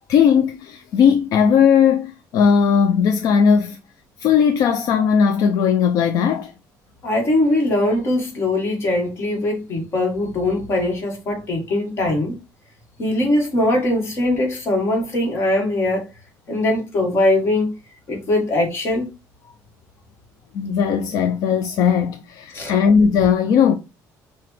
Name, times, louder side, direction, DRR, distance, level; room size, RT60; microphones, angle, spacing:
voice 1, 0.1-3.8 4.2-6.5 20.5-23.7, left 7 dB, 55° left, 0.4 m, -17 dB
voice 2, 7.0-12.4 13.0-16.1 16.5-17.7 18.1-19.1 22.5-22.8, left 1 dB, 35° left, 1.5 m, -21 dB
5.8 x 2.5 x 3.1 m
cardioid pair, 170°, 7 cm